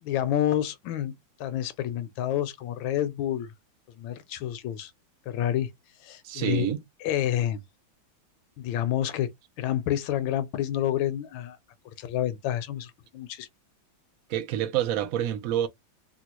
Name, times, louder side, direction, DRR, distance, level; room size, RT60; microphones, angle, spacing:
voice 1, 0.0-1.1 1.4-3.5 4.0-4.9 5.3-5.7 6.0-6.7 7.0-7.6 8.6-9.3 9.6-11.6 12.0-13.5, left 11 dB, 80° left, 1.3 m, -28 dB
voice 2, 6.2-6.8 14.3-15.7, right 11 dB, 70° right, 0.8 m, -27 dB
3.7 x 2.3 x 2.9 m
omnidirectional pair, 2.2 m